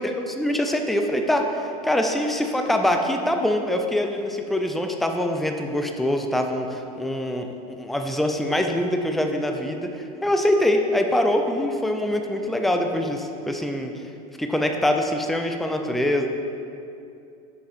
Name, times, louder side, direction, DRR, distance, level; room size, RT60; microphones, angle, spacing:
voice 1, 0.0-7.5 7.8-13.9 14.4-16.3, left 1 dB, ahead, 4 dB, 0.4 m, -24 dB
5.8 x 3.6 x 5.0 m, 2.6 s
supercardioid pair, 110°, 19 cm